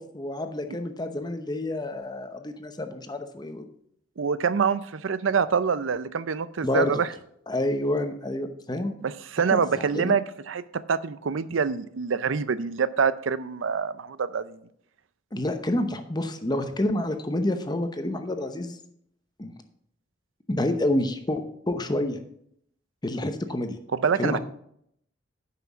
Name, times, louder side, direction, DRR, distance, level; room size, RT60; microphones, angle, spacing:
voice 1, 0.0-3.7 6.6-7.0 7.5-8.9 9.5-10.2 15.3-18.8 19.4-19.5 20.5-22.2 23.0-23.8 24.2-24.4, left 1 dB, 20° left, 8 dB, 0.8 m, -28 dB
voice 2, 4.2-7.1 9.0-14.6 24.0-24.4, right 6 dB, 85° right, 15 dB, 0.5 m, -26 dB
9.3 x 6.0 x 6.0 m, 0.71 s
head